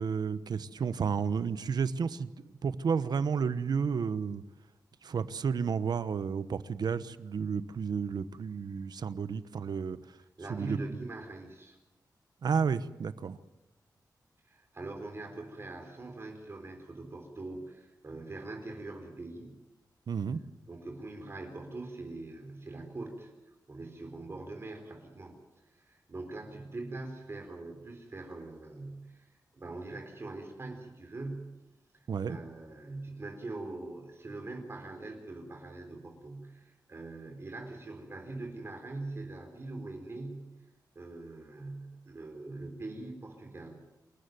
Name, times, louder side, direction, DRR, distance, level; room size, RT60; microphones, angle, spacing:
voice 1, 0.0-2.3 2.6-4.4 5.0-10.0 10.5-10.8 12.4-13.4 20.1-20.4 32.1-32.4, right 6 dB, 70° right, 14 dB, 1.1 m, -31 dB
voice 2, 10.4-11.8 14.4-19.6 20.7-23.3 23.7-25.4 25.7-31.6 31.9-40.5 40.9-43.8, right 2 dB, 35° right, 3 dB, 4.1 m, -42 dB
27.5 x 15.0 x 9.4 m, 1.0 s
wide cardioid pair, 130°, 7 cm